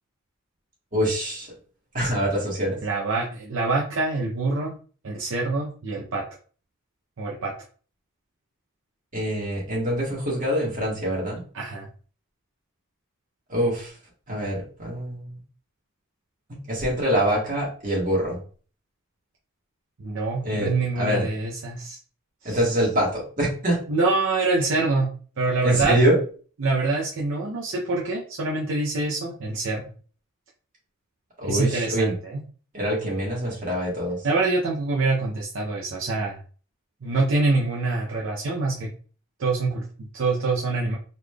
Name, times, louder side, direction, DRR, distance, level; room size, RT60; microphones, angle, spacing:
voice 1, 0.9-1.5 1.9-2.8 9.1-11.4 13.5-13.9 14.3-15.3 16.7-18.4 20.4-21.2 22.4-23.8 25.6-26.2 31.4-32.1 32.7-34.2, equal, 40° right, -3 dB, 1.5 m, -24 dB
voice 2, 2.8-4.8 5.0-6.2 7.2-7.5 11.5-11.9 20.0-22.0 22.4-22.6 23.9-25.1 25.4-26.0 26.6-29.8 31.5-32.4 34.2-36.4 37.0-38.9 39.4-41.0, right 3 dB, 60° right, -2 dB, 0.6 m, -25 dB
4.0 x 3.2 x 2.2 m, 0.40 s
head